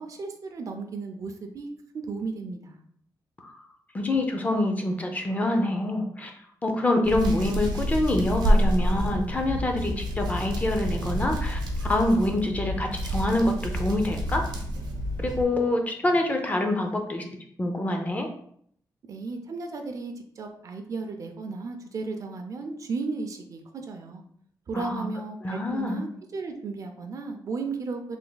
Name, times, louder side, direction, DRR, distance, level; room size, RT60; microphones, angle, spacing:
voice 1, 0.0-1.7 1.9-2.8 19.1-23.6 23.9-24.2 24.7-28.2, right 4 dB, 50° right, 5 dB, 0.5 m, -34 dB
voice 2, 3.9-6.3 6.6-14.5 15.2-17.2 17.6-18.3 24.7-25.1 25.4-26.0, left 1 dB, 20° left, 4 dB, 0.4 m, -26 dB
Hands, 7.0-15.4, equal, 75° right, 0.8 m, -28 dB
3.4 x 2.2 x 3.8 m, 0.64 s
wide cardioid pair, 150°, 7 cm